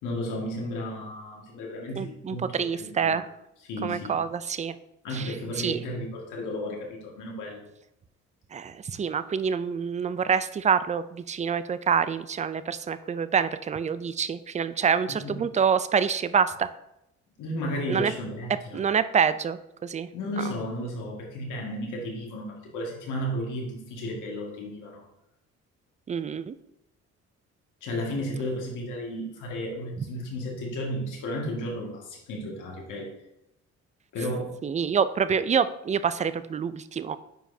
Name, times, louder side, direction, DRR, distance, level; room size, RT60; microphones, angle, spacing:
voice 1, 0.0-3.2 3.6-4.2 5.0-7.6 15.1-15.4 17.4-18.8 20.1-25.0 27.8-33.1 34.1-34.6, equal, 90° left, -1 dB, 1.9 m, -33 dB
voice 2, 2.0-3.3 3.8-4.8 5.1-5.8 8.5-16.7 17.9-18.1 18.7-20.1 20.4-20.5 26.1-26.5 30.0-30.1 34.6-37.2, right 6 dB, 25° right, 14 dB, 0.4 m, -26 dB
8.9 x 4.9 x 2.7 m, 0.84 s
cardioid pair, 90°, 30 cm